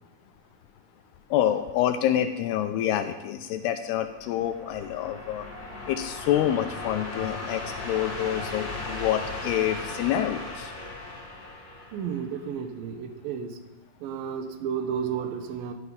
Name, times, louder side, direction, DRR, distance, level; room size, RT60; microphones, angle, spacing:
voice 1, 1.3-5.5 5.9-10.7, left 11 dB, 80° left, 7 dB, 2.6 m, -27 dB
sound 1, 4.1-12.5, left 2 dB, 30° left, 2.3 m, -37 dB
voice 2, 11.9-13.6 14.0-15.7, right 7 dB, 70° right, 7 dB, 2.7 m, -32 dB
13.5 x 10.5 x 5.7 m, 1.0 s
omnidirectional pair, 4.8 m